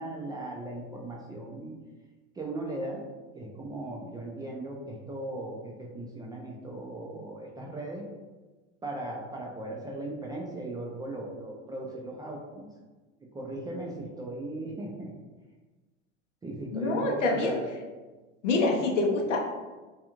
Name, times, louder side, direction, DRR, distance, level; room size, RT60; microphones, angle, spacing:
voice 1, 0.0-1.8 2.3-3.0 3.3-8.1 8.8-12.7 13.3-15.1 16.4-17.7, right 2 dB, 10° right, -2 dB, 0.3 m, -37 dB
voice 2, 16.7-17.6 18.4-19.5, left 3 dB, 85° left, 0 dB, 0.7 m, -26 dB
2.4 x 2.3 x 2.9 m, 1.2 s
hypercardioid pair, 90°, 36 cm